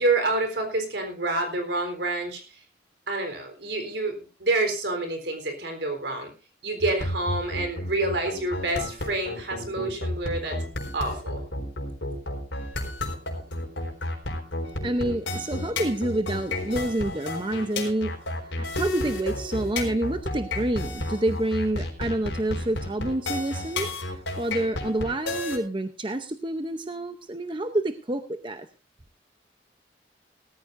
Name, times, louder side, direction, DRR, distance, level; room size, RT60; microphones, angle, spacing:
voice 1, 0.0-2.4 3.1-6.3 6.6-10.6 10.9-11.4, right 2 dB, 75° right, 5 dB, 3.9 m, -28 dB
sound 1, 6.8-25.6, left 1 dB, 90° left, 4.1 m, -31 dB
voice 2, 14.8-18.1 18.5-28.7, right 1 dB, 25° right, 8 dB, 0.7 m, -28 dB
18.5 x 14.0 x 2.6 m, 0.30 s
head